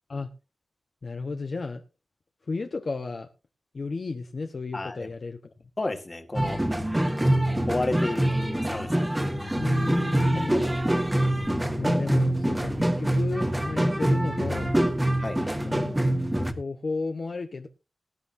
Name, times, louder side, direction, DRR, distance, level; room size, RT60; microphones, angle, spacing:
voice 1, 1.0-1.8 2.5-3.3 3.7-5.4 9.5-10.7 11.8-14.7 15.6-15.9 16.6-17.7, left 3 dB, 55° left, 1.2 m, -33 dB
voice 2, 4.7-5.1 5.8-6.6 7.7-9.2 10.4-10.6 15.2-15.4, left 2 dB, 35° left, 2.0 m, -32 dB
sound 1, 6.3-16.5, right 1 dB, 15° right, 1.6 m, -25 dB
19.0 x 10.5 x 2.8 m
wide cardioid pair, 80°, 0 cm